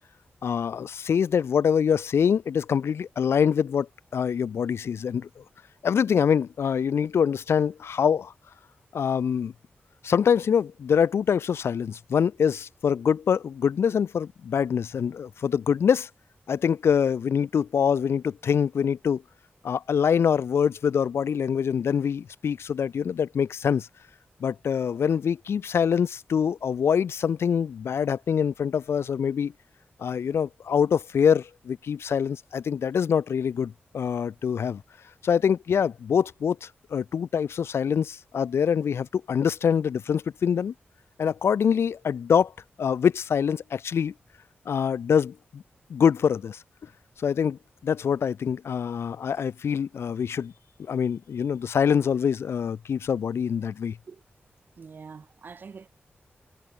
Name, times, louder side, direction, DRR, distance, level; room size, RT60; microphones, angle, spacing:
voice 1, 0.4-5.4 5.8-8.3 8.9-9.5 10.0-16.1 16.5-19.2 19.6-23.9 24.4-29.5 30.0-34.8 35.2-40.7 41.2-42.5 42.8-44.1 44.7-45.6 45.9-46.6 47.2-50.5 50.8-54.0, left 7 dB, 90° left, 0.9 m, -25 dB
voice 2, 54.8-55.9, right 5 dB, 50° right, 2.6 m, -44 dB
wide cardioid pair, 155°, 4 cm